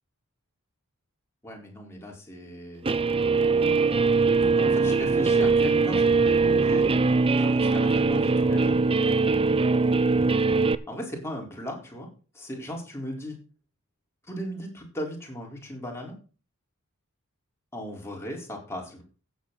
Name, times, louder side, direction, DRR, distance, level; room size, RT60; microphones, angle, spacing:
voice 1, 1.4-2.8 4.6-6.9 7.4-8.8 10.9-12.1 12.3-13.4 14.3-16.1 17.7-19.0, equal, 10° left, -1 dB, 4.2 m, -37 dB
Guitar, 2.8-10.7, right 4 dB, 25° right, 0.6 m, -22 dB
15.0 x 8.2 x 4.1 m, 0.36 s
head